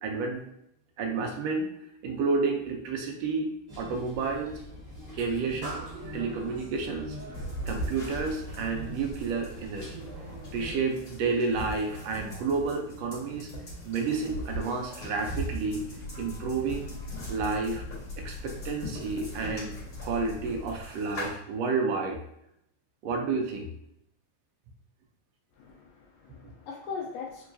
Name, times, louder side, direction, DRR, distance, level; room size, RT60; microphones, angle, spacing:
voice 1, 0.0-0.4 1.0-1.7 2.0-4.6 5.2-7.2 7.7-10.1 10.5-13.5 13.8-15.8 16.2-16.9 17.3-17.8 18.2-19.7 20.0-22.2 23.0-23.7, right 4 dB, 80° right, 3 dB, 1.5 m, -30 dB
sound 1, 3.7-10.8, equal, 25° right, 0.7 m, -42 dB
sound 2, 7.3-21.3, equal, 45° left, 1.9 m, -40 dB
Breathing / Train, 15.5-21.0, left 3 dB, 60° left, 1.9 m, -43 dB
voice 2, 25.5-27.5, left 5 dB, 80° left, -1 dB, 1.5 m, -40 dB
4.5 x 3.0 x 2.5 m, 0.77 s
omnidirectional pair, 3.3 m